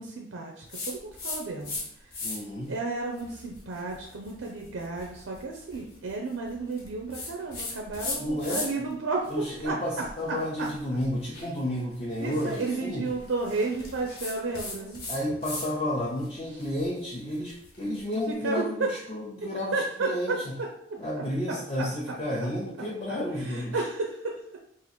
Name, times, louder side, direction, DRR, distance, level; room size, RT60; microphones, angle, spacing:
voice 1, 0.0-1.8 2.7-10.7 12.2-15.0 18.4-18.9 19.4-20.4 23.1-23.2 23.4-24.4, right 3 dB, 80° right, 0 dB, 0.5 m, -32 dB
sound 1, 0.7-1.8 2.1-2.6 3.1-8.9 9.2-15.7 16.0-18.2, left 3 dB, 50° left, 0.9 m, -39 dB
voice 2, 2.2-2.7 8.2-8.6 9.3-13.1 15.1-20.5 21.0-23.8, left 1 dB, 30° left, -6 dB, 0.5 m, -31 dB
2.9 x 2.5 x 4.1 m, 0.70 s
head